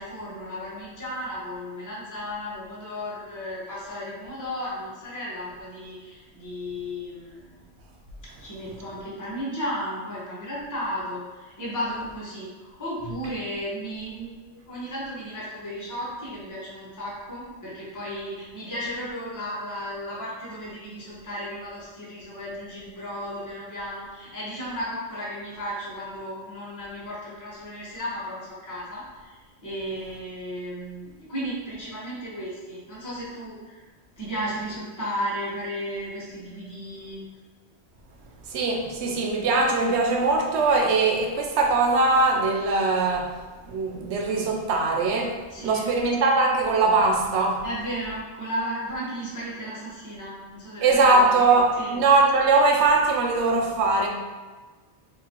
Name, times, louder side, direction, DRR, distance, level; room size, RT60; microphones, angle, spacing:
voice 1, 0.0-7.6 8.4-29.4 29.6-33.8 34.2-37.2 45.5-45.9 47.6-51.3 51.8-52.0, equal, 20° left, -8 dB, 0.9 m, -34 dB
voice 2, 38.5-43.3 43.7-45.4 45.6-47.6 50.8-54.1, right 3 dB, 85° right, 1 dB, 0.9 m, -21 dB
3.9 x 2.8 x 2.8 m, 1.3 s
omnidirectional pair, 1.1 m